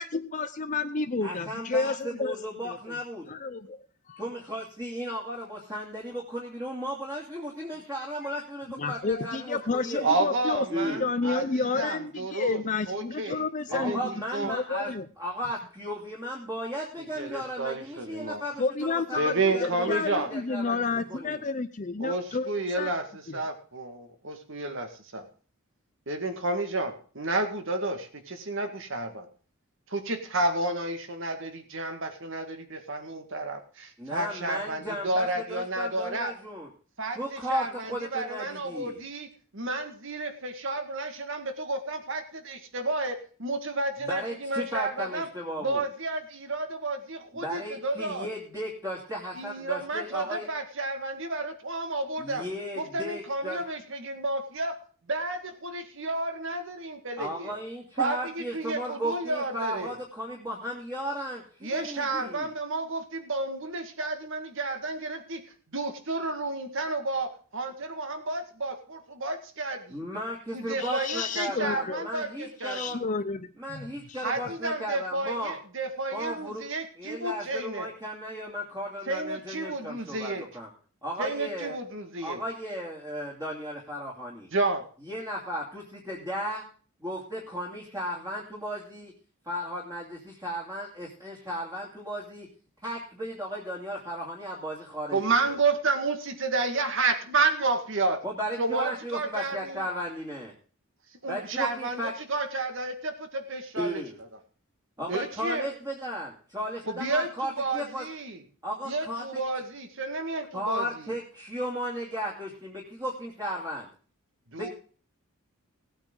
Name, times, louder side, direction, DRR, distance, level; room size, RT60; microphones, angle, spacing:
voice 1, 0.0-2.4 2.6-2.8 3.3-4.3 8.8-14.0 14.4-15.1 18.6-23.0 23.3-23.4 70.8-72.0 72.6-74.5, left 4 dB, 35° left, 9 dB, 0.6 m, -31 dB
voice 2, 1.2-3.2 4.2-10.1 10.7-11.0 13.7-20.8 21.1-21.4 34.0-36.7 37.1-39.0 44.0-45.8 47.3-50.5 52.2-53.6 57.2-62.5 69.9-73.0 73.6-75.6 76.1-76.6 77.0-80.7 81.0-81.8 82.2-84.5 85.1-86.6 87.0-89.1 89.4-92.5 92.8-95.2 98.2-100.5 101.2-102.1 103.8-104.2 105.0-108.1 108.6-109.2 110.5-113.9 114.6-114.7, equal, 15° right, -3 dB, 2.8 m, -35 dB
voice 3, 10.0-12.6 12.9-14.5 17.0-18.4 19.2-20.3 22.0-25.3 26.1-29.3 29.9-36.3 37.0-45.3 45.6-48.3 49.4-52.4 52.8-54.8 55.1-57.6 58.0-59.9 61.6-70.0 70.5-73.0 74.2-77.9 79.1-80.5 81.2-82.4 84.5-84.9 95.1-98.2 98.6-99.9 101.2-104.0 105.1-105.7 106.9-108.4 108.9-111.1 114.5-114.7, right 2 dB, 60° right, 6 dB, 1.9 m, -31 dB
18.5 x 8.9 x 3.9 m, 0.41 s
head